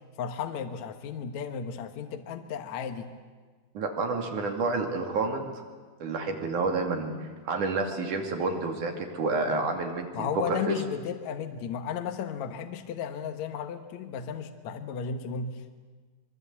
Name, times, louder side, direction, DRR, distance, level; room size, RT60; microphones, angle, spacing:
voice 1, 0.2-3.1 10.1-15.8, left 7 dB, 65° left, 7 dB, 2.4 m, -34 dB
voice 2, 3.7-5.5 6.0-10.8, right 3 dB, 70° right, 3 dB, 4.0 m, -29 dB
26.0 x 23.0 x 8.4 m, 1.5 s
omnidirectional pair, 3.7 m